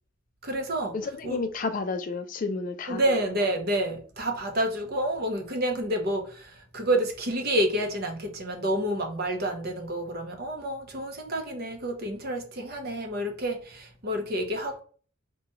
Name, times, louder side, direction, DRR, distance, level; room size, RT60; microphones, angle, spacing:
voice 1, 0.4-1.0 1.2-1.4 2.9-14.8, right 1 dB, 45° right, 0.7 m, -29 dB
voice 2, 0.9-3.0, left 4 dB, 40° left, 0.3 m, -31 dB
4.7 x 2.2 x 2.9 m
head